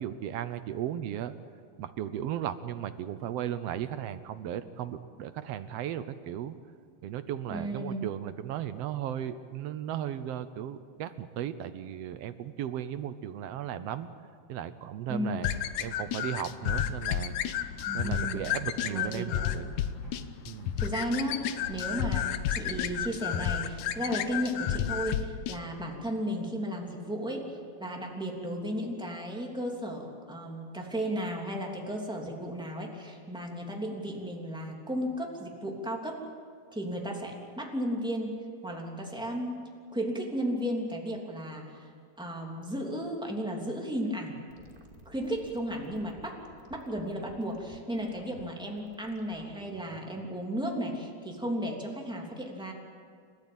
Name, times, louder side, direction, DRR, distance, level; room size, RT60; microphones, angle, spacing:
voice 1, 0.0-1.3 1.8-6.6 7.0-14.1 14.5-15.5 15.8-17.4 17.9-19.8 20.4-20.7, right 10 dB, 70° right, 12 dB, 1.5 m, -36 dB
voice 2, 7.5-8.1 15.1-15.5 17.8-18.5 18.9-19.5 20.8-36.2 36.7-38.4 38.6-39.6 39.9-41.9 42.2-44.4 45.0-46.4 46.7-52.7, equal, ahead, -1 dB, 2.7 m, -34 dB
sound 1, 15.4-25.6, left 10 dB, 75° left, 2.1 m, -32 dB
sound 2, 18.3-23.8, left 1 dB, 35° right, 4.4 m, -47 dB
sound 3, 44.5-50.1, equal, 20° right, 2.1 m, -54 dB
29.5 x 13.5 x 8.9 m, 2.2 s
omnidirectional pair, 3.6 m